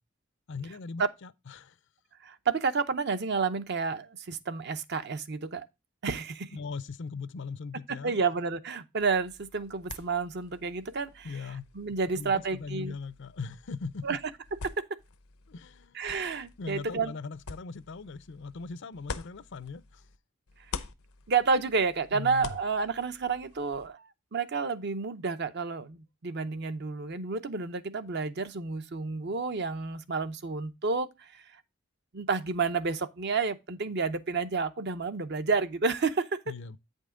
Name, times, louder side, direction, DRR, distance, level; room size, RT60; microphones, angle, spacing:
voice 1, 0.5-1.8 6.5-8.2 11.2-11.7 12.1-14.2 15.5-16.0 16.6-20.1 22.1-22.5 36.5-36.8, left 4 dB, 55° left, 0.5 m, -40 dB
voice 2, 2.2-5.7 6.0-6.5 8.0-11.3 11.7-12.9 14.0-14.2 14.6-15.0 15.9-17.1 21.3-24.0 24.3-31.4 32.1-36.4, right 4 dB, 50° right, 0.6 m, -30 dB
sound 1, 9.0-20.2 20.5-23.9, left 4 dB, 85° left, 0.8 m, -46 dB
8.7 x 5.3 x 3.7 m
head